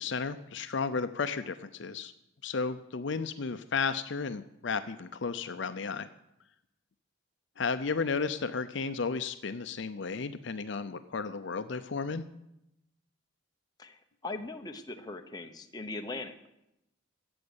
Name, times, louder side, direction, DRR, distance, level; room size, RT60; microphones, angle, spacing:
voice 1, 0.0-2.1 2.4-6.1 7.6-12.3, left 5 dB, 60° left, 10 dB, 0.5 m, -33 dB
voice 2, 13.8-16.5, left 2 dB, 20° left, 4 dB, 0.9 m, -40 dB
14.0 x 7.8 x 8.1 m, 0.86 s
head